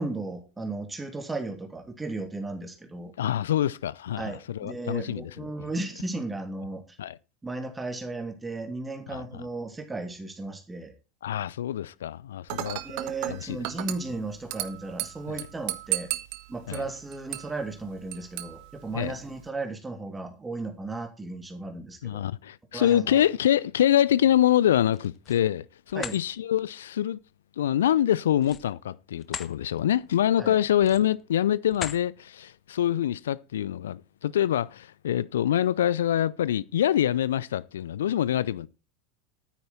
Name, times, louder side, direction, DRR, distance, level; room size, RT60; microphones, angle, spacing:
voice 1, 0.0-3.1 4.2-7.0 7.4-10.9 12.8-16.1 16.5-22.2 22.7-23.1 25.9-26.2 30.4-30.5, right 2 dB, 15° right, 3.0 m, -35 dB
voice 2, 3.2-5.5 7.0-7.2 9.1-9.2 11.2-12.8 13.3-13.6 15.3-15.4 16.7-16.8 18.9-19.2 22.0-27.2 27.6-38.7, left 11 dB, 75° left, 0.6 m, -25 dB
Dishes pots and pans / Glass, 12.5-19.5, right 17 dB, 55° right, 1.3 m, -36 dB
sound 1, 24.8-25.5 25.9-26.2 28.4-29.5 30.0-30.2 30.7-31.2 31.7-32.1, left 8 dB, 30° left, 1.2 m, -38 dB
11.5 x 9.6 x 4.3 m
figure-of-eight pair, 85°, 0 cm